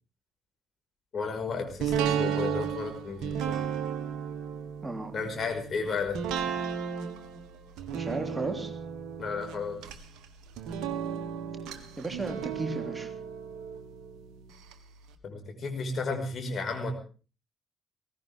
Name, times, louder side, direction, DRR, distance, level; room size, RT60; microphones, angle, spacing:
voice 1, 1.1-3.6 5.1-6.2 9.2-9.8 15.2-16.9, left 4 dB, 45° left, 4 dB, 5.5 m, -33 dB
sound 1, 1.8-14.7 15.1-15.2, right 8 dB, 65° right, 1.7 m, -34 dB
voice 2, 4.8-5.2 7.9-8.7 12.0-13.1, right 2 dB, 20° right, 5 dB, 3.1 m, -34 dB
21.0 x 17.5 x 3.7 m, 0.36 s
figure-of-eight pair, 45°, 0 cm